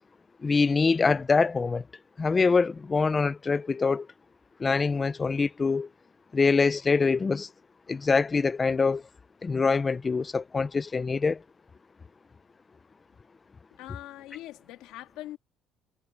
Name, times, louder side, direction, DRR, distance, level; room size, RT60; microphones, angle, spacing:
voice 1, 0.4-1.8 2.2-4.1 4.6-5.9 6.3-7.5 7.9-9.0 9.4-11.4, left 4 dB, 20° left, 0.4 m, -24 dB
voice 2, 13.7-15.4, left 15 dB, 85° left, 2.4 m, -42 dB
cardioid pair, 165°, 0 cm